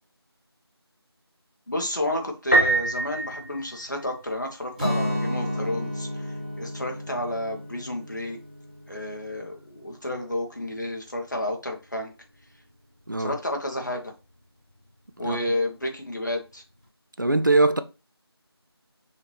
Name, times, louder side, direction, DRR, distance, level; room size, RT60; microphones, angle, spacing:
voice 1, 1.7-8.4 8.9-12.1 13.2-14.1 15.2-16.6, left 1 dB, 45° left, 1.1 m, -31 dB
Piano, 2.5-4.3, right 2 dB, 25° left, 0.9 m, -24 dB
Guitar, 4.7-10.6, left 1 dB, 20° right, 1.2 m, -33 dB
voice 2, 17.2-17.8, right 2 dB, 50° right, 0.5 m, -21 dB
5.6 x 2.8 x 3.2 m
figure-of-eight pair, 180°, 14 cm